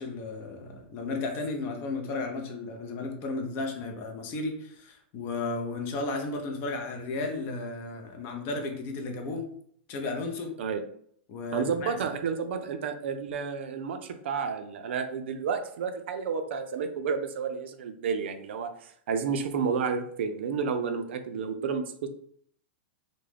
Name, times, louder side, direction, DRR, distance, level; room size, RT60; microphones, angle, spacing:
voice 1, 0.0-9.4 9.9-10.6 11.3-12.0, left 3 dB, 35° left, 3 dB, 0.6 m, -34 dB
voice 2, 11.5-22.1, right 6 dB, 70° right, 7 dB, 0.4 m, -31 dB
2.3 x 2.1 x 3.3 m, 0.64 s
hypercardioid pair, 140°, 6 cm